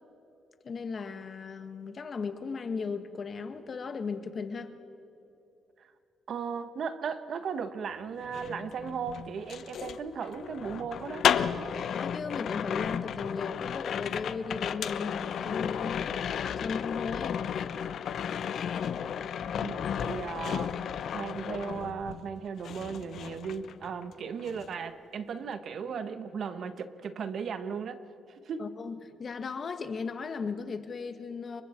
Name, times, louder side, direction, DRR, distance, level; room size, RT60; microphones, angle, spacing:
voice 1, 0.6-4.7 11.9-17.4 28.6-31.6, left 5 dB, 45° left, 1.6 m, -36 dB
voice 2, 6.3-11.3 19.6-20.7 21.1-28.0 28.3-28.6, right 6 dB, 60° right, 1.3 m, -36 dB
sound 1, 8.2-22.3 22.6-24.1 24.4-24.7, left 8 dB, 65° left, 0.9 m, -33 dB
28.0 x 23.5 x 4.5 m
cardioid pair, 90°, 0 cm